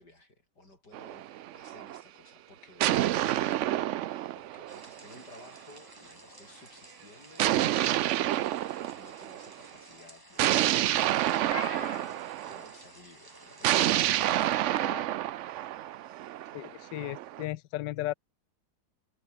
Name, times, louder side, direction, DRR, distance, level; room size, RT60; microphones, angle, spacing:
voice 1, 0.0-11.1 11.8-15.1, left 2 dB, 70° left, 8.5 m, -55 dB
sound 1, 0.9-2.0 2.8-5.4 7.4-9.5 10.4-12.7 13.6-17.4, right 13 dB, 85° right, 0.6 m, -28 dB
sound 2, 4.7-13.9, right 1 dB, 10° right, 5.4 m, -54 dB
Meow, 11.0-12.1 14.0-15.1, left 5 dB, 35° left, 1.3 m, -43 dB
voice 2, 16.5-18.1, left 15 dB, 85° left, 1.3 m, -35 dB
omnidirectional pair, 1.9 m